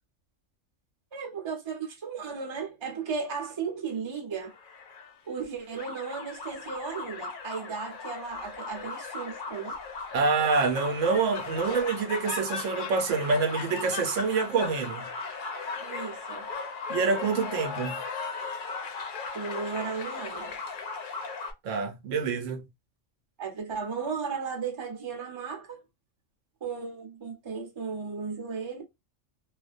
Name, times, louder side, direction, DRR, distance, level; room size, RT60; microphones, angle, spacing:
voice 1, 1.1-4.5 5.3-9.7 15.8-16.5 17.9-18.0 19.3-20.6 23.4-25.8 26.6-28.8, right 5 dB, 30° right, 0.6 m, -35 dB
sound 1, 4.4-5.4 5.7-21.5, left 4 dB, 55° left, 0.6 m, -37 dB
voice 2, 10.1-15.1 16.9-18.0 21.6-22.6, right 4 dB, 85° right, 1.0 m, -26 dB
2.4 x 2.1 x 2.4 m
omnidirectional pair, 1.3 m